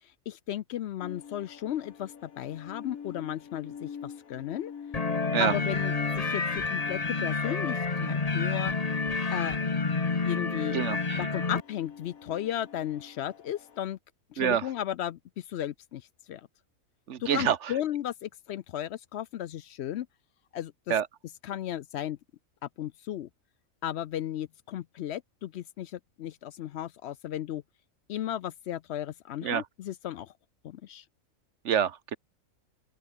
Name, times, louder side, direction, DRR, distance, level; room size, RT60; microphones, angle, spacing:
voice 1, 0.3-4.7 5.4-8.7 9.3-9.6 10.2-10.8 11.2-14.0 14.3-16.0 16.3-16.5 17.2-20.1 20.5-21.0 21.4-22.2 22.8-23.3 23.8-27.6 28.1-30.3 30.6-31.0, left 11 dB, 65° left, 0.7 m, -35 dB
sound 1, 1.0-13.8, left 7 dB, 90° left, 1.9 m, -45 dB
sound 2, 4.9-11.6, left 4 dB, 30° left, 1.3 m, -29 dB
voice 2, 10.7-11.2 14.4-14.6 17.1-17.6 20.9-21.1 29.4-29.6 31.6-32.2, right 8 dB, 60° right, 1.2 m, -26 dB
open air
omnidirectional pair, 1.4 m